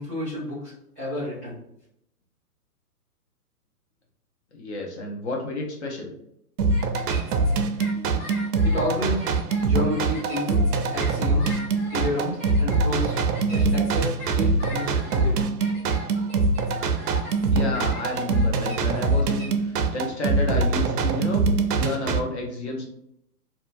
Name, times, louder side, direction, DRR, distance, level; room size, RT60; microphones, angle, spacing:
voice 1, 0.0-1.6 8.6-9.3 9.6-10.6 10.9-11.6 11.9-13.1 13.5-15.4, left 1 dB, ahead, -12 dB, 0.5 m, -30 dB
voice 2, 4.6-6.1 17.4-21.4 21.7-22.8, left 2 dB, 45° left, 0 dB, 0.6 m, -31 dB
sound 1, 6.6-22.2, right 3 dB, 75° right, 0.6 m, -23 dB
sound 2, 6.7-19.5, left 1 dB, 20° left, 1.2 m, -40 dB
2.8 x 2.2 x 2.4 m, 0.75 s
hypercardioid pair, 150°, 47 cm